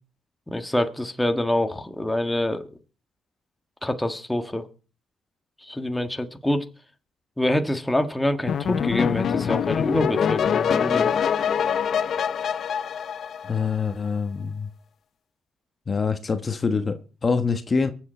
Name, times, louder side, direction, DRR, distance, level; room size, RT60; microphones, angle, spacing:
voice 1, 0.5-2.7 3.8-4.7 5.6-6.7 7.4-11.1, left 1 dB, 5° left, 1.6 m, -26 dB
sound 1, 8.5-13.9, left 8 dB, 60° left, 0.8 m, -24 dB
voice 2, 13.4-14.7 15.9-17.9, left 5 dB, 35° left, 1.3 m, -25 dB
23.0 x 8.1 x 4.4 m
cardioid pair, 90°, 0 cm